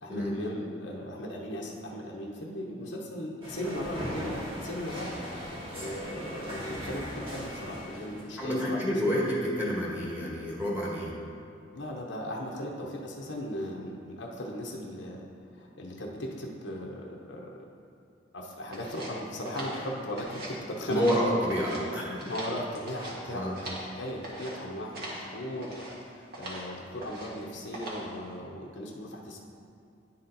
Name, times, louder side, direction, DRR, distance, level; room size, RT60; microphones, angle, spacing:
voice 1, 0.0-4.3 4.6-5.1 5.7-8.8 11.7-15.2 15.5-17.7 18.3-21.2 22.2-25.7 26.1-29.4, left 1 dB, 85° left, -2 dB, 0.9 m, -37 dB
sound 1, 3.4-8.3, equal, 30° right, 1.8 m, -38 dB
voice 2, 8.4-11.1 20.9-22.2 23.3-23.5, equal, 10° right, -5 dB, 1.5 m, -29 dB
sound 2, 18.7-20.6 20.9-21.8 22.1-23.9 24.2-24.6 24.9-25.3 25.6-25.9 26.3-26.7 27.0-27.4 27.7-28.1, right 1 dB, 60° right, 1.6 m, -40 dB
10.5 x 4.3 x 3.9 m, 2.5 s
head